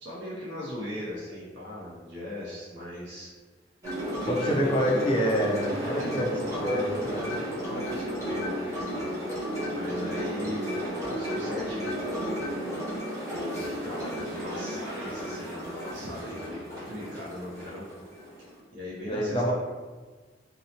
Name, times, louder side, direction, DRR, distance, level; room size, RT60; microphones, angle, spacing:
voice 1, 0.0-3.3 4.2-5.1 5.8-9.1 9.7-10.7 11.0-12.6 13.3-17.8 18.7-19.5, left 1 dB, 75° right, -7 dB, 0.6 m, -38 dB
sound 1, 3.8-18.6, equal, 20° right, 0.9 m, -33 dB
voice 2, 4.3-7.1 19.0-19.5, equal, 30° left, 0 dB, 0.4 m, -27 dB
2.7 x 2.0 x 2.7 m, 1.4 s
head